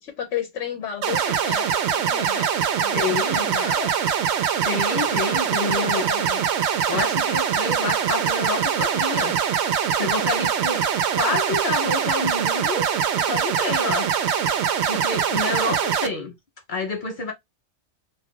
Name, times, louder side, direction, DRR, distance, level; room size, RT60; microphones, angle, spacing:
voice 1, 0.0-3.9 5.5-6.4, left 9 dB, 80° left, 1.0 m, -33 dB
sound 1, 1.0-16.1, right 8 dB, 70° right, 0.8 m, -23 dB
voice 2, 2.9-3.5 4.7-6.1 6.9-9.4 10.0-10.8 11.1-14.1 14.9-16.3 16.7-17.3, left 3 dB, 55° left, 0.6 m, -28 dB
2.5 x 2.3 x 3.5 m
omnidirectional pair, 1.3 m